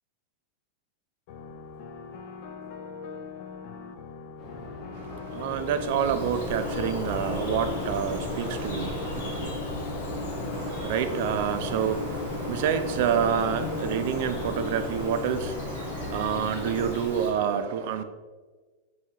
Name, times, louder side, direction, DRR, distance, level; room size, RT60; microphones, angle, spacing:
sound 1, 1.3-14.7, left 5 dB, 45° left, 0.3 m, -41 dB
sound 2, 4.4-16.9, left 2 dB, 30° left, 0.7 m, -37 dB
voice 1, 4.9-9.6 10.5-18.0, right 8 dB, 55° right, 0.3 m, -28 dB
Bird vocalization bird call bird song, 5.3-17.3, left 1 dB, 60° left, 1.0 m, -37 dB
3.8 x 2.7 x 4.2 m
supercardioid pair, 160°, 0 cm